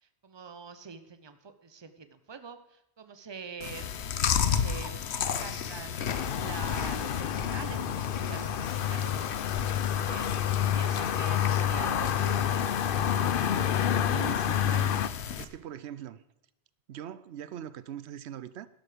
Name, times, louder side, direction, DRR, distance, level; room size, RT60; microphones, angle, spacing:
voice 1, 0.0-3.9 4.3-6.0 6.4-9.1 10.1-10.3 10.7-12.9, right 5 dB, 25° right, 0.8 m, -45 dB
Chewing mastication, 3.6-15.4, left 8 dB, 85° left, 1.1 m, -34 dB
sound 1, 5.5-11.9, equal, 5° left, 5.0 m, -52 dB
sound 2, 6.1-15.1, left 9 dB, 60° left, 0.8 m, -29 dB
voice 2, 13.9-14.9 15.4-16.2 16.9-18.7, right 10 dB, 85° right, 0.9 m, -41 dB
12.0 x 11.5 x 5.1 m
omnidirectional pair, 1.1 m